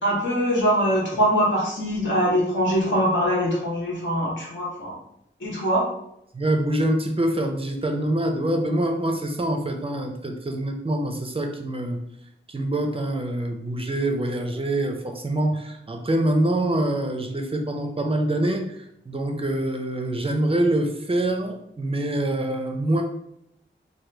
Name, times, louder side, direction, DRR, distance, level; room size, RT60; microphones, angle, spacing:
voice 1, 0.0-5.0 5.4-5.9, equal, 65° left, -5 dB, 1.3 m, -23 dB
voice 2, 6.3-12.0 12.5-23.0, right 1 dB, 30° right, 4 dB, 0.5 m, -25 dB
3.0 x 2.2 x 3.3 m, 0.76 s
wide cardioid pair, 95°, 21 cm